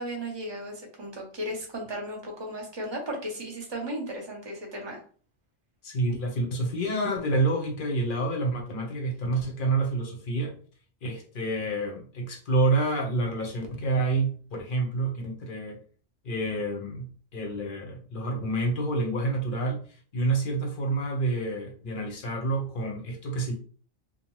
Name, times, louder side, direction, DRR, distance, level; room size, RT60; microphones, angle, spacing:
voice 1, 0.0-5.0, equal, 25° right, 0 dB, 0.7 m, -35 dB
voice 2, 5.8-10.6 11.0-15.8 16.2-19.9 20.1-23.5, right 2 dB, 55° left, 2 dB, 0.8 m, -28 dB
2.6 x 2.1 x 3.0 m, 0.42 s
omnidirectional pair, 1.2 m